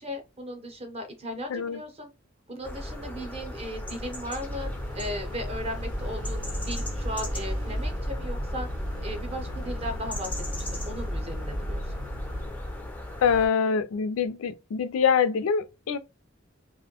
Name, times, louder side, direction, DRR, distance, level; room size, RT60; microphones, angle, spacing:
voice 1, 0.0-2.1 2.5-4.7 4.9-8.7 9.0-11.9, equal, 30° right, 0.7 m, -37 dB
voice 2, 1.5-1.8 13.2-16.0, left 6 dB, 90° left, 0.4 m, -24 dB
sound 1, 2.6-13.5, left 1 dB, 10° left, 0.3 m, -38 dB
sound 2, 4.4-12.5, equal, 85° right, 0.9 m, -34 dB
2.5 x 2.1 x 2.8 m
head